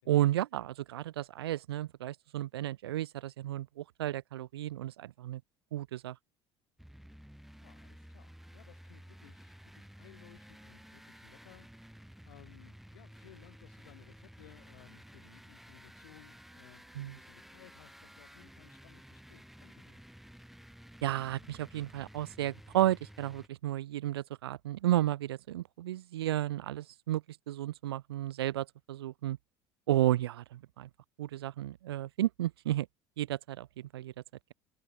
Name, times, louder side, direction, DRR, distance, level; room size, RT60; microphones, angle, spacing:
voice 1, 0.1-5.4 5.7-6.2 17.0-17.2 21.0-29.4 29.9-30.9 31.2-32.9 33.2-34.1, right 13 dB, 80° right, 0.5 m, -32 dB
sound 1, 6.8-23.5, equal, ahead, 2.2 m, -53 dB
voice 2, 7.6-20.0, left 17 dB, 75° left, 4.6 m, -60 dB
hypercardioid pair, 65°, 13 cm